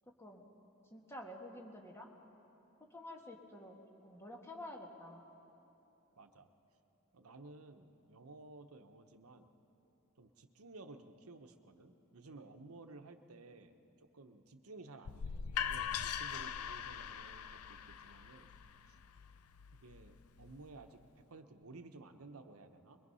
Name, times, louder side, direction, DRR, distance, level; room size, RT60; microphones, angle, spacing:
voice 1, 0.1-0.5 0.9-2.1 2.8-5.3, left 1 dB, 10° left, 1 dB, 1.7 m, -50 dB
voice 2, 6.2-6.5 7.1-9.5 10.2-13.8 14.1-18.5 18.9-19.0 19.7-23.0, right 3 dB, 80° right, 7 dB, 1.0 m, -55 dB
sound 1, 15.0-20.8, left 8 dB, 85° left, 0.5 m, -42 dB
22.5 x 21.5 x 5.6 m, 3.0 s
head